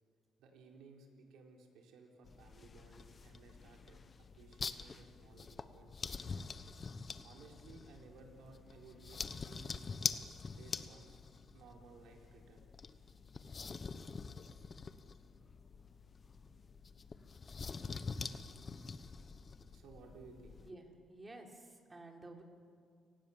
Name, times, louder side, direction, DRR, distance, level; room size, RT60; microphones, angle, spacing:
voice 1, 0.4-6.4 7.2-9.8 10.5-11.2 11.5-12.7 19.7-20.6, right 4 dB, 85° right, 1 dB, 4.4 m, -58 dB
sound 1, 2.2-20.7, left 5 dB, 40° left, 1.2 m, -45 dB
voice 2, 20.6-22.4, right 2 dB, 20° right, 3 dB, 3.9 m, -52 dB
30.0 x 19.0 x 7.5 m, 2.2 s
cardioid pair, 90°, 0 cm